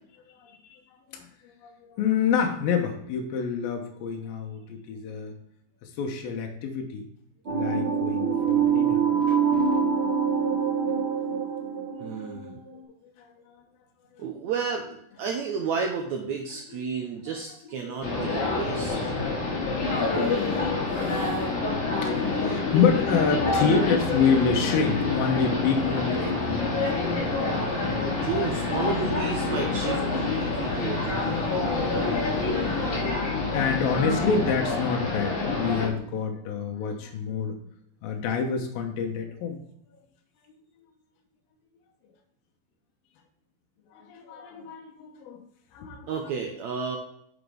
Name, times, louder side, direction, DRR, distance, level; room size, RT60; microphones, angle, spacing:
voice 1, 0.4-0.8 1.1-1.3 1.6-5.3 5.8-7.1 7.5-9.1 11.4-11.5 12.1-12.4 13.2-13.3 17.7-18.1 19.9-27.1 33.1-37.6 38.0-39.6 43.9-45.4 45.7-46.1, left 6 dB, 75° left, 2 dB, 2.8 m, -28 dB
sound 1, 7.5-12.7, right 6 dB, 45° right, 2.0 m, -25 dB
voice 2, 12.0-12.6 14.2-19.1 28.2-31.4 46.1-47.0, right 5 dB, 80° right, 2 dB, 1.6 m, -32 dB
sound 2, 18.0-35.9, left 3 dB, 60° left, 3.3 m, -27 dB
sound 3, 25.7-33.1, right 4 dB, 15° right, 3.2 m, -44 dB
9.2 x 6.1 x 3.4 m, 0.71 s
omnidirectional pair, 4.4 m